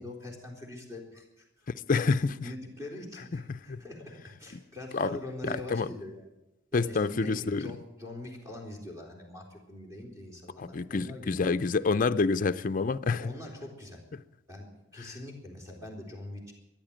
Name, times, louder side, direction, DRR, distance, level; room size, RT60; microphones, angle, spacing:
voice 1, 0.0-1.4 2.0-6.3 6.7-11.5 13.1-14.0 14.5-14.7 14.9-16.5, left 1 dB, 15° right, 3.9 m, -43 dB
voice 2, 1.9-2.3 3.5-3.8 4.5-4.6 4.9-5.2 5.4-5.9 6.7-7.7 10.6-13.3, left 4 dB, 40° left, 0.5 m, -28 dB
14.0 x 10.5 x 8.7 m
head